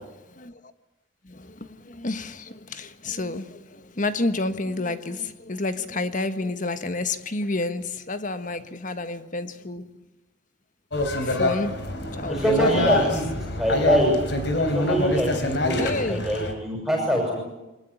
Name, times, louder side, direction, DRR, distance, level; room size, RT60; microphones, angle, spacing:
voice 1, 1.2-9.9 11.2-11.8 12.2-13.1 15.8-16.2, left 2 dB, 40° left, 11 dB, 1.5 m, -30 dB
sound 1, 10.9-16.5, left 2 dB, 60° left, 3.7 m, -25 dB
voice 2, 12.3-14.2 14.5-17.4, equal, ahead, 0 dB, 6.3 m, -24 dB
24.0 x 20.5 x 9.7 m, 1.0 s
head